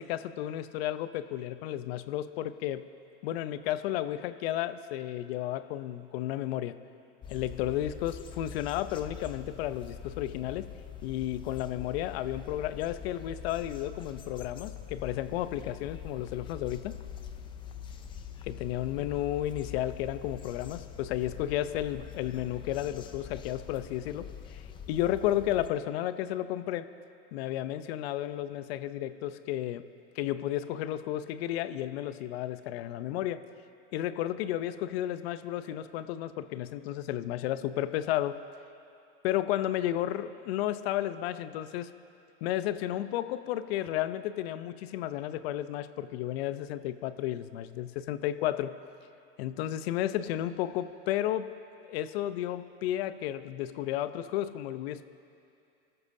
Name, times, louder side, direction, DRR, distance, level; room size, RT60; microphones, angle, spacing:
voice 1, 0.0-2.8 3.2-6.8 7.3-10.7 11.0-17.0 18.4-24.6 24.9-26.9 27.3-29.9 30.2-33.4 33.9-38.4 39.2-41.9 42.4-48.7 49.4-51.5 51.9-55.0, left 12 dB, 60° left, 13 dB, 0.7 m, -32 dB
sound 1, 7.2-25.7, left 8 dB, 15° left, 0.4 m, -44 dB
27.5 x 13.5 x 2.7 m, 2.5 s
supercardioid pair, 130°, 35 cm